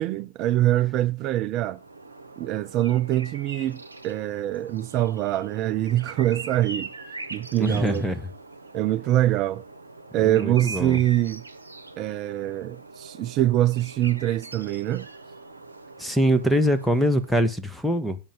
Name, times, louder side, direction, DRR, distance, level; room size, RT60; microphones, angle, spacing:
voice 1, 0.0-1.8 2.4-6.9 7.3-8.0 8.7-9.6 10.1-11.4 12.0-15.1, right 14 dB, 40° right, 0.4 m, -24 dB
sound 1, 1.6-17.5, right 3 dB, 80° right, 0.9 m, -42 dB
voice 2, 7.6-8.3 10.2-11.0 16.0-18.2, equal, ahead, 1.0 m, -23 dB
8.8 x 5.2 x 7.3 m
figure-of-eight pair, 90°, 0 cm